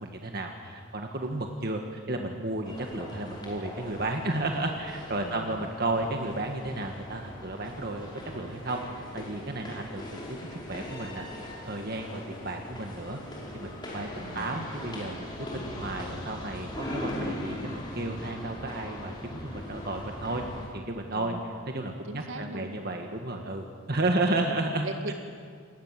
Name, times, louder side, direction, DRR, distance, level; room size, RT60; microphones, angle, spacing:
voice 1, 0.0-8.1 8.3-10.4 10.7-11.3 11.6-13.2 13.5-14.1 14.3-15.3 15.5-20.4 20.7-24.8, right 2 dB, 45° right, 3 dB, 1.6 m, -33 dB
sound 1, 2.6-20.7, left 1 dB, 20° left, 5.0 m, -40 dB
voice 2, 5.2-5.6 14.2-14.6 21.1-21.4 22.0-22.8 24.8-25.1, right 2 dB, 65° right, 5 dB, 2.2 m, -39 dB
28.0 x 20.0 x 7.6 m, 2.2 s
head